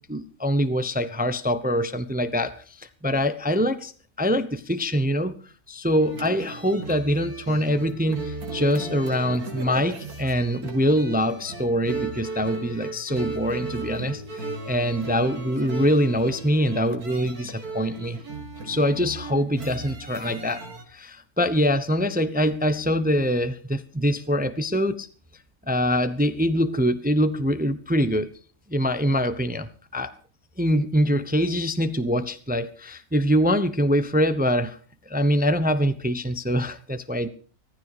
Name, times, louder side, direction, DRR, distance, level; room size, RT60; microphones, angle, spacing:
voice 1, 0.1-3.9 4.2-5.4 5.7-18.2 18.6-20.6 20.9-25.1 25.7-28.3 28.7-30.1 30.6-34.8 35.1-37.3, equal, 10° right, 11 dB, 0.7 m, -24 dB
sound 1, 6.0-20.8, right 3 dB, 80° right, 3.2 m, -36 dB
16.0 x 14.5 x 4.8 m, 0.39 s
omnidirectional pair, 1.6 m